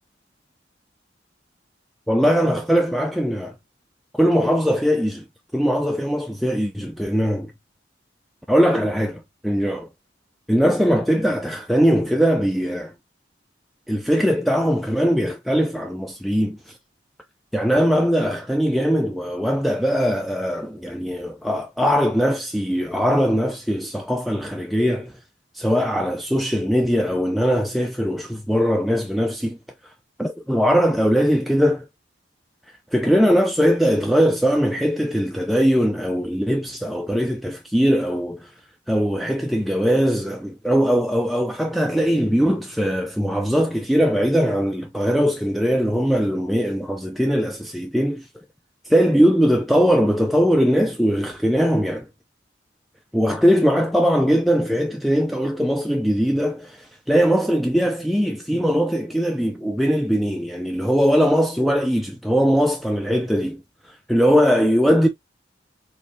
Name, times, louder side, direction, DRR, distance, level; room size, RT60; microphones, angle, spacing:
voice 1, 2.1-3.5 4.1-5.2 5.5-7.5 8.5-9.9 10.5-12.9 13.9-16.8 17.5-25.1 25.5-29.6 30.2-31.9 32.9-38.5 38.9-48.3 48.9-52.1 53.1-63.6 63.9-65.1, equal, ahead, 0.3 m, -20 dB
4.2 x 3.0 x 2.5 m
head